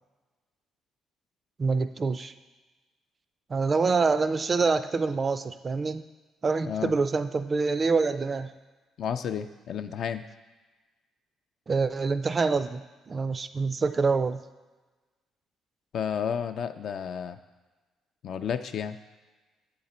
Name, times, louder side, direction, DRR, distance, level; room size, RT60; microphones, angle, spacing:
voice 1, 1.6-2.3 3.5-6.0 6.4-8.5 11.7-14.4, right 4 dB, 35° right, 11 dB, 0.3 m, -26 dB
voice 2, 9.0-10.2 15.9-17.4 18.2-19.0, left 8 dB, 65° left, 9 dB, 0.4 m, -31 dB
8.0 x 3.9 x 4.2 m, 1.3 s
supercardioid pair, 80°, 0 cm